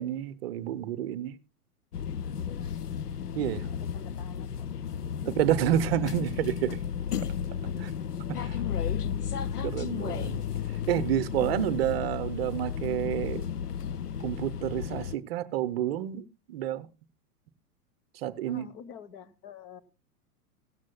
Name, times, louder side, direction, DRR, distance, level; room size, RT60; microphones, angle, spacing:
voice 1, 0.0-1.4 3.3-3.7 5.3-6.8 7.8-7.9 8.4-8.6 9.6-10.4 10.9-13.5 14.2-16.9 18.1-18.7, right 12 dB, 40° right, 0.7 m, -29 dB
sound 1, 1.9-15.2, left 8 dB, 85° left, 0.6 m, -33 dB
voice 2, 3.7-4.5 18.5-19.8, left 7 dB, 35° left, 1.1 m, -47 dB
16.5 x 13.5 x 2.3 m
figure-of-eight pair, 105°, 45 cm